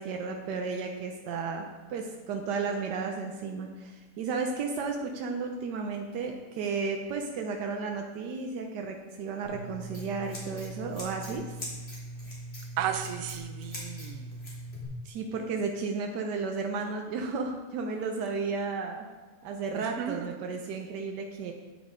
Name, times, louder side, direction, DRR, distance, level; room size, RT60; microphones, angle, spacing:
voice 1, 0.0-11.4 15.0-19.0 19.4-21.5, right 4 dB, 90° right, 2 dB, 1.4 m, -33 dB
Scissors, 9.4-14.8, right 1 dB, 35° left, 2.8 m, -40 dB
voice 2, 12.8-14.3 19.8-20.3, right 9 dB, 65° right, 7 dB, 1.0 m, -34 dB
9.0 x 8.5 x 3.7 m, 1.3 s
omnidirectional pair, 1.8 m